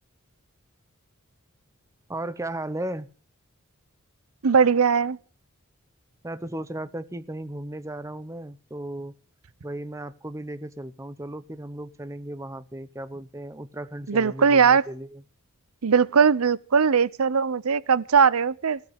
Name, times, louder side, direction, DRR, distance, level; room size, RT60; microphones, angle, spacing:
voice 1, 2.1-3.1 6.2-9.1 9.6-15.2, right 1 dB, 15° right, 0.7 m, -35 dB
voice 2, 4.4-5.2 14.1-14.8 15.8-18.8, right 6 dB, 85° right, 0.6 m, -20 dB
16.5 x 6.7 x 9.8 m
head